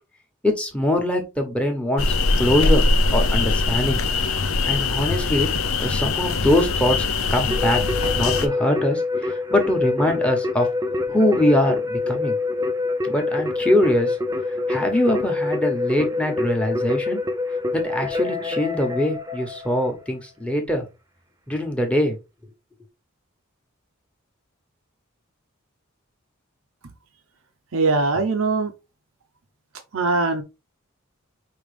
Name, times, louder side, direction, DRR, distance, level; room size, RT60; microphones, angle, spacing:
voice 1, 0.4-4.0 4.7-7.8 8.1-10.7 11.1-12.4 13.0-14.2 14.5-17.2 17.7-20.9 21.5-22.2, left 1 dB, 5° left, 1.1 m, -23 dB
sound 1, 2.0-8.5, left 3 dB, 85° left, 0.6 m, -22 dB
Keyboard (musical), 7.5-19.9, left 3 dB, 15° right, 0.5 m, -26 dB
voice 2, 27.7-28.7 29.9-30.4, right 3 dB, 70° right, 0.7 m, -21 dB
5.2 x 3.0 x 3.3 m
head